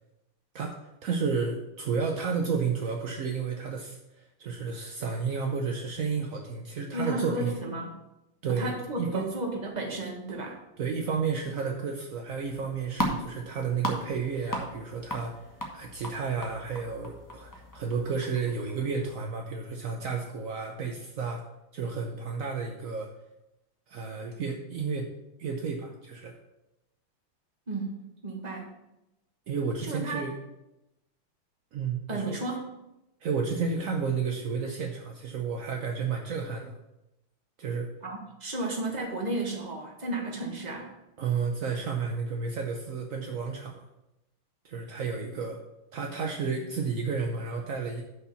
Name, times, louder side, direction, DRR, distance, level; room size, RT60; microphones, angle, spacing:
voice 1, 0.5-7.5 8.4-9.3 10.8-21.4 21.7-23.1 23.9-25.1 25.4-26.3 29.5-30.3 31.7-32.4 33.2-36.7 37.6-37.9 41.2-43.8 44.6-45.6 45.9-48.0, right 5 dB, 65° right, 2 dB, 0.8 m, -32 dB
voice 2, 6.9-7.9 8.5-10.6 27.7-28.7 29.8-30.3 32.1-32.7 38.0-40.9, right 2 dB, 25° right, 0 dB, 1.4 m, -33 dB
sound 1, 12.4-19.1, equal, 15° left, 0.8 m, -37 dB
6.2 x 5.6 x 7.0 m, 0.92 s
omnidirectional pair, 2.3 m